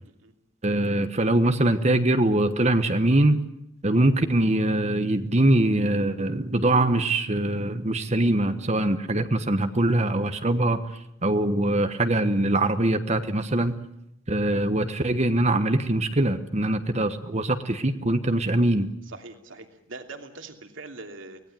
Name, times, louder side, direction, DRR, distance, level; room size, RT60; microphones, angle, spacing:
voice 1, 0.6-3.4 3.8-10.8 11.2-13.8 14.3-18.9, right 1 dB, 35° right, 9 dB, 1.2 m, -23 dB
voice 2, 19.1-21.4, right 3 dB, 65° right, 5 dB, 3.0 m, -42 dB
24.5 x 18.5 x 9.1 m, 0.80 s
head